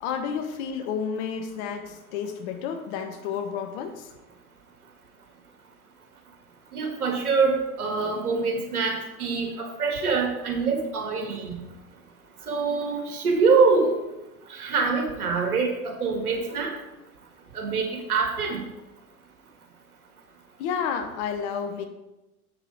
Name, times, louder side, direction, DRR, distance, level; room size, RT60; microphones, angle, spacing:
voice 1, 0.0-4.1 20.6-21.9, left 7 dB, 50° left, 7 dB, 1.2 m, -31 dB
voice 2, 6.7-11.6 12.5-13.9 14.5-16.7 17.5-18.6, right 4 dB, 75° right, 1 dB, 2.2 m, -24 dB
7.9 x 6.3 x 5.0 m, 0.99 s
figure-of-eight pair, 85°, 44 cm